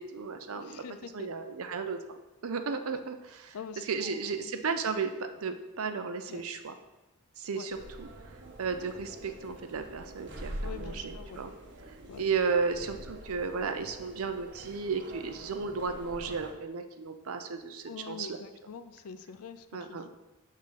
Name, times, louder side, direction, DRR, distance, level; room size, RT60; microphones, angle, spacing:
voice 1, 0.0-0.8 1.1-2.2 2.4-6.7 7.4-8.1 8.6-11.5 12.2-18.4 19.7-20.0, right 5 dB, 75° right, 8 dB, 0.6 m, -34 dB
voice 2, 0.5-1.3 2.9-3.0 3.5-4.2 6.3-6.4 7.5-7.7 10.6-11.5 12.1-12.2 17.9-20.1, left 6 dB, 90° left, 11 dB, 0.4 m, -45 dB
sound 1, 7.7-16.5, right 1 dB, 50° right, 0.9 m, -45 dB
6.3 x 3.7 x 5.6 m, 1.0 s
head